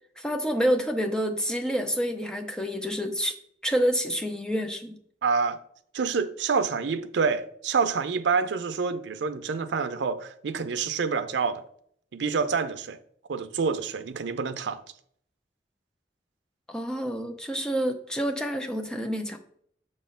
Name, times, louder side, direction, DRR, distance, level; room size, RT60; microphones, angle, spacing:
voice 1, 0.2-3.4 3.6-5.0 16.7-19.4, equal, 5° left, 0.5 m, -28 dB
voice 2, 5.2-5.6 5.9-11.6 12.1-13.0 13.3-14.8, right 5 dB, 80° right, 0.5 m, -27 dB
6.4 x 3.1 x 5.6 m
head